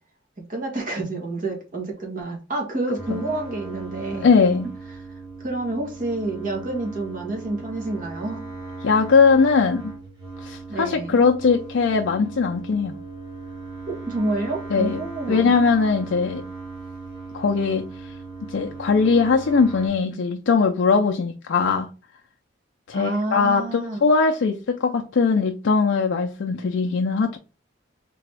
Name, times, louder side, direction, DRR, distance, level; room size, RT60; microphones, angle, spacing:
voice 1, 0.4-4.3 5.4-8.4 10.7-11.2 13.9-15.6 22.9-24.0, right 2 dB, 45° right, 1.4 m, -28 dB
sound 1, 3.0-19.9, right 3 dB, 25° right, 1.9 m, -38 dB
voice 2, 4.2-4.7 8.8-9.9 10.4-13.0 14.7-15.0 15.3-16.4 17.3-18.1 18.5-21.9 22.9-27.4, left 5 dB, 70° left, 0.4 m, -20 dB
3.8 x 3.4 x 3.3 m
head